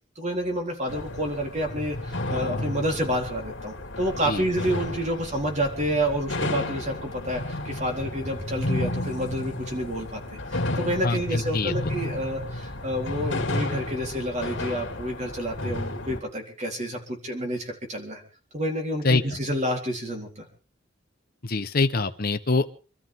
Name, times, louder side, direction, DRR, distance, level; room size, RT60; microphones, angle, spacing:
voice 1, 0.2-18.2 18.5-20.5, equal, 40° right, 2 dB, 4.1 m, -29 dB
sound 1, 0.9-16.2, left 1 dB, 85° left, 2.3 m, -32 dB
voice 2, 11.0-11.7 19.0-19.2 21.4-22.7, left 3 dB, 50° left, 8 dB, 1.1 m, -24 dB
26.5 x 13.0 x 3.8 m, 0.35 s
head